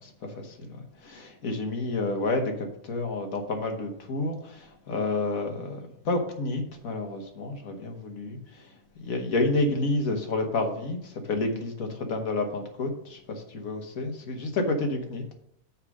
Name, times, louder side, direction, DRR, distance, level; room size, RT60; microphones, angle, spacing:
voice 1, 0.0-5.8 6.0-8.4 9.0-15.2, left 2 dB, 75° left, 4 dB, 1.7 m, -30 dB
6.5 x 4.9 x 6.4 m, 0.72 s
omnidirectional pair, 1.5 m